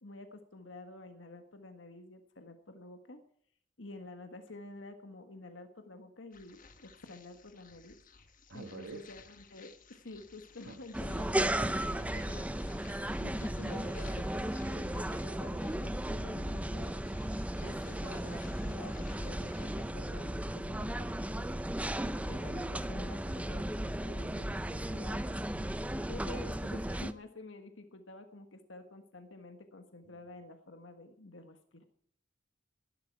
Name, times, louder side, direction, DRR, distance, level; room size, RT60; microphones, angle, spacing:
voice 1, 0.0-3.2 3.8-8.0 8.5-12.5 13.2-17.2 17.6-21.5 22.3-25.7 26.1-31.8, left 2 dB, 80° left, 7 dB, 1.5 m, -49 dB
sound 1, 6.3-19.9, left 6 dB, 45° left, 1.4 m, -58 dB
voice 2, 8.5-9.1 10.6-11.3 30.0-30.2, right 3 dB, 75° right, 9 dB, 1.3 m, -48 dB
sound 2, 10.9-27.1, right 1 dB, 5° right, 0.6 m, -35 dB
16.5 x 11.5 x 4.7 m, 0.64 s
head